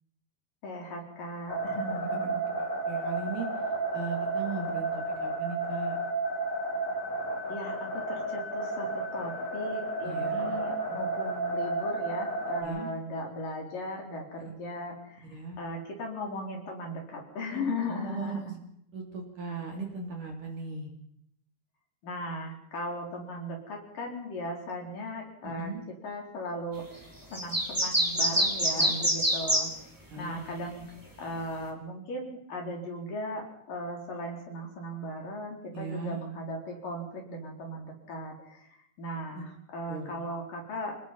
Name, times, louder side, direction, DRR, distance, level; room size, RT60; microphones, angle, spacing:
voice 1, 0.6-2.4 7.5-18.6 22.0-25.7 26.0-29.7 30.2-30.8 31.2-41.0, left 1 dB, 45° left, 1 dB, 5.3 m, -37 dB
sound 1, 1.5-12.6, right 2 dB, 65° left, 8.4 m, -32 dB
voice 2, 2.6-3.5 3.9-6.0 10.0-10.6 12.6-12.9 15.3-15.6 17.9-18.5 18.9-20.9 25.4-25.8 28.8-29.2 30.1-30.3 35.7-36.2 39.3-39.4 39.9-40.1, right 4 dB, 45° right, 2 dB, 4.1 m, -38 dB
sound 2, 27.3-29.7, equal, 5° right, 3.7 m, -25 dB
28.0 x 19.0 x 5.5 m, 0.72 s
omnidirectional pair, 5.7 m